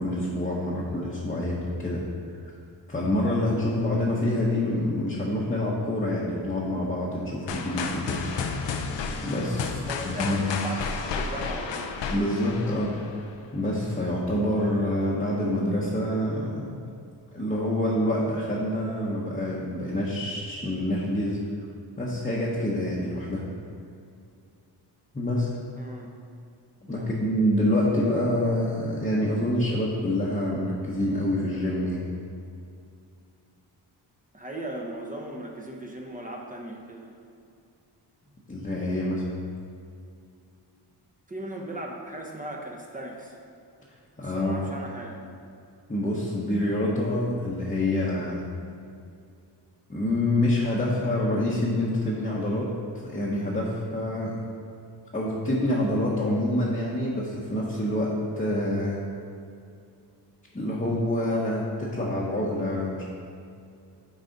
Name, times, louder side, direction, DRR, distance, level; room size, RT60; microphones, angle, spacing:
voice 1, 0.0-2.0 2.9-8.2 9.2-9.8 10.0-10.6 12.1-13.0 13.5-16.8 17.3-21.4 22.0-23.5 25.1-25.5 26.8-32.1 38.5-39.3 44.2-44.6 45.9-48.4 49.9-52.7 53.0-54.3 55.1-59.0 60.5-63.1, left 1 dB, 20° left, -6 dB, 1.0 m, -26 dB
sound 1, 7.5-13.4, left 5 dB, 85° left, 0.7 m, -32 dB
voice 2, 9.6-11.9 25.8-26.1 26.9-27.1 34.3-37.1 41.3-43.4 44.2-45.2, right 1 dB, 20° right, 0 dB, 0.9 m, -38 dB
9.6 x 4.0 x 3.9 m, 2.4 s
wide cardioid pair, 105°, 42 cm